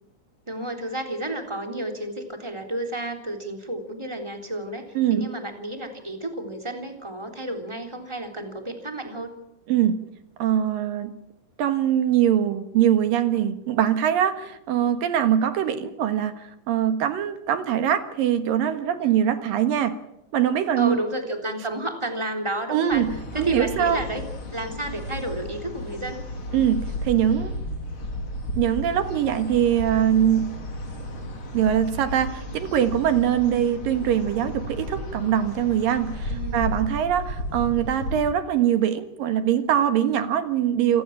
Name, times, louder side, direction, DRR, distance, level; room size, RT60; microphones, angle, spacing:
voice 1, 0.5-9.3 19.0-19.5 20.8-23.1 23.3-24.3 24.5-26.2 36.3-36.8, right 1 dB, 10° right, 4 dB, 3.2 m, -31 dB
voice 2, 5.0-5.3 9.7-10.0 10.4-11.1 11.6-20.0 20.3-21.0 22.7-23.1 23.4-24.0 26.5-27.5 28.6-30.5 31.5-41.0, right 10 dB, 70° right, 9 dB, 3.1 m, -22 dB
sound 1, 22.9-38.2, left 1 dB, 35° left, 3.7 m, -33 dB
28.5 x 19.0 x 7.3 m, 0.88 s
omnidirectional pair, 4.2 m